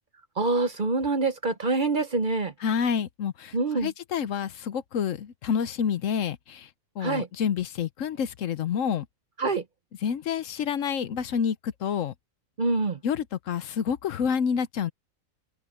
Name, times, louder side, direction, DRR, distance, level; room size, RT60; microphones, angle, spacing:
voice 1, 0.4-2.5 3.5-3.9 7.0-7.3 9.4-9.6 12.6-13.0, right 3 dB, 40° right, 0.9 m, -25 dB
voice 2, 2.6-3.5 3.8-6.7 7.0-9.1 10.0-12.1 13.0-14.9, left 7 dB, 65° left, 1.1 m, -28 dB
open air
omnidirectional pair, 1.5 m